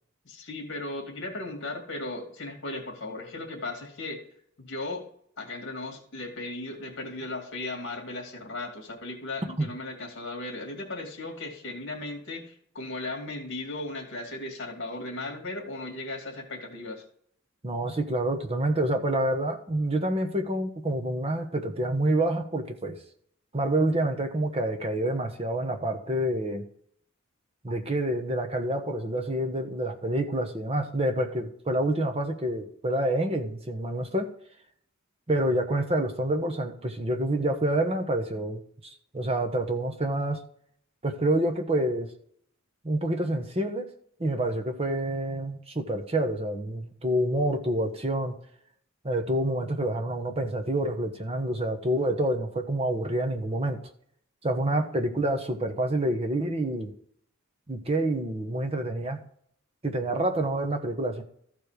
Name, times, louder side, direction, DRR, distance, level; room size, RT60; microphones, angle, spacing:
voice 1, 0.2-4.2 4.6-5.0 5.4-17.0, left 2 dB, 60° left, 2 dB, 2.5 m, -36 dB
voice 2, 17.6-23.0 23.5-26.6 27.6-34.3 35.3-40.4 41.0-42.1 42.8-43.9 44.2-48.3 49.0-53.8 54.4-56.9 57.7-59.2 59.8-61.2, right 1 dB, 30° right, 4 dB, 1.1 m, -27 dB
14.0 x 4.8 x 5.1 m, 0.64 s
head